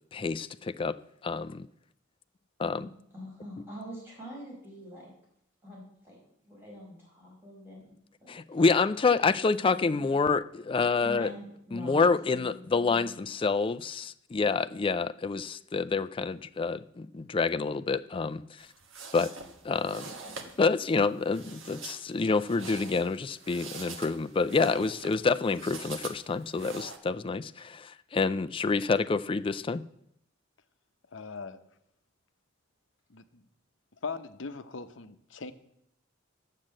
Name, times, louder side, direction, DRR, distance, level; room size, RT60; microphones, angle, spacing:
voice 1, 0.1-1.0 1.2-1.7 2.6-2.8 8.3-11.3 11.7-18.4 19.1-19.3 19.6-20.0 20.6-29.8, left 4 dB, 25° left, 11 dB, 0.4 m, -27 dB
voice 2, 3.1-5.1 5.6-6.2 6.4-7.9 8.2-8.6 11.0-13.2 19.8-20.4, equal, 10° right, -5 dB, 5.4 m, -46 dB
sound 1, 18.6-27.0, right 4 dB, 70° right, 1.4 m, -44 dB
voice 3, 31.1-31.6 33.1-33.4 34.0-35.5, left 4 dB, 65° left, 10 dB, 0.8 m, -40 dB
10.0 x 7.5 x 7.6 m, 0.77 s
head